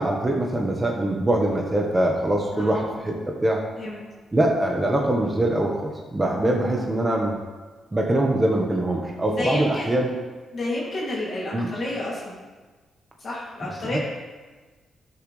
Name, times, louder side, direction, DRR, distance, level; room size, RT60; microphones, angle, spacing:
voice 1, 0.0-3.6 4.3-7.4 7.9-10.1 11.5-11.7 13.9-14.0, right 1 dB, 20° right, 0 dB, 1.2 m, -23 dB
voice 2, 2.5-3.0 3.8-4.0 6.4-6.8 9.3-9.9 10.5-12.4 13.2-14.0, left 2 dB, 50° left, -7 dB, 2.6 m, -30 dB
12.5 x 7.1 x 3.3 m, 1.3 s
cardioid pair, 100°, 0 cm